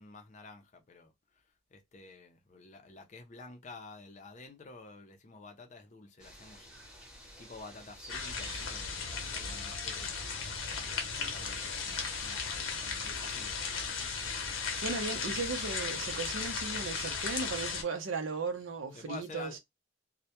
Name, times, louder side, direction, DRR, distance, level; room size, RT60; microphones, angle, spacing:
voice 1, 0.0-1.4 1.7-6.7 7.4-10.6 11.1-13.9 18.9-19.6, left 3 dB, 40° left, 0.5 m, -50 dB
sound 1, 6.2-12.6, equal, 5° right, 0.9 m, -51 dB
sound 2, 8.1-17.8, left 5 dB, 90° left, 0.7 m, -36 dB
voice 2, 14.7-19.6, right 4 dB, 80° right, 0.6 m, -36 dB
2.2 x 2.1 x 2.8 m
head